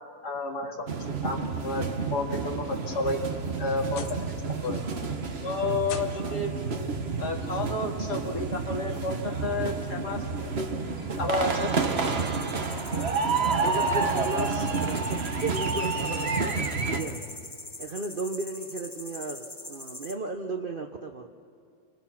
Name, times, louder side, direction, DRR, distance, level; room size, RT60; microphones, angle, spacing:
voice 1, 0.2-1.8 2.1-3.2 3.6-4.8 5.4-6.9 7.2-10.5 11.0-12.1, left 2 dB, 50° left, 1 dB, 2.6 m, -31 dB
sound 1, 0.9-17.0, right 4 dB, 40° right, 1.0 m, -29 dB
sound 2, 3.0-4.4 4.7-5.2 5.8-6.5 7.7-7.8 8.4-8.5 10.1-10.2, left 7 dB, 80° left, 2.0 m, -43 dB
sound 3, 4.0-20.1, left 2 dB, 15° left, 0.8 m, -46 dB
voice 2, 13.6-17.3 17.8-21.3, right 3 dB, 70° right, 4 dB, 0.5 m, -35 dB
29.0 x 24.5 x 5.9 m, 2.4 s
omnidirectional pair, 2.3 m